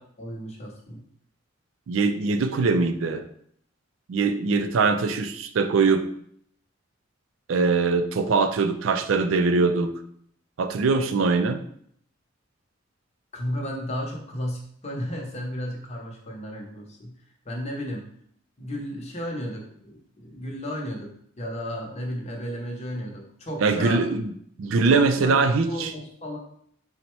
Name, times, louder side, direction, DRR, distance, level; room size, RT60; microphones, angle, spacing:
voice 1, 0.2-1.0 13.3-17.2 17.5-18.1 18.6-24.1 24.8-25.4 25.7-26.4, equal, 35° left, 0 dB, 0.8 m, -34 dB
voice 2, 1.9-3.2 4.1-6.0 7.5-9.9 10.6-11.6 23.6-24.3 24.6-25.9, right 4 dB, 80° right, 8 dB, 0.4 m, -22 dB
4.0 x 2.1 x 4.4 m, 0.65 s
head